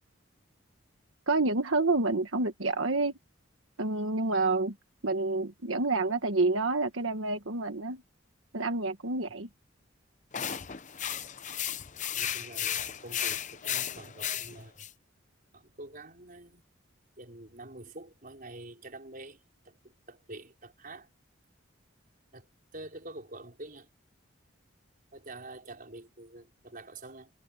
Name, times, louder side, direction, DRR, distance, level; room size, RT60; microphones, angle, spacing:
voice 1, 1.3-3.1 3.8-4.7 5.0-8.0 8.5-9.5, right 3 dB, 85° right, 1.5 m, -28 dB
sound 1, 10.3-14.9, left 9 dB, 40° left, 0.8 m, -34 dB
voice 2, 12.2-14.9 15.5-16.6 17.2-21.1 22.3-23.9 25.1-27.3, right 2 dB, 45° right, 5.3 m, -47 dB
head